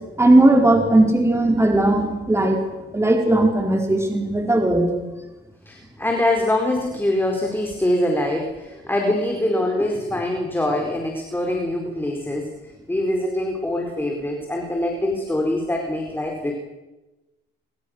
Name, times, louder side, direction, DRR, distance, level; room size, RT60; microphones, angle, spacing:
voice 1, 0.2-2.6 2.9-4.9, right 1 dB, 15° right, 2 dB, 4.7 m, -17 dB
voice 2, 5.7-12.5 12.9-16.5, left 1 dB, 10° left, 1 dB, 4.4 m, -24 dB
28.0 x 24.5 x 6.6 m, 1.1 s
cardioid pair, 90°, 20 cm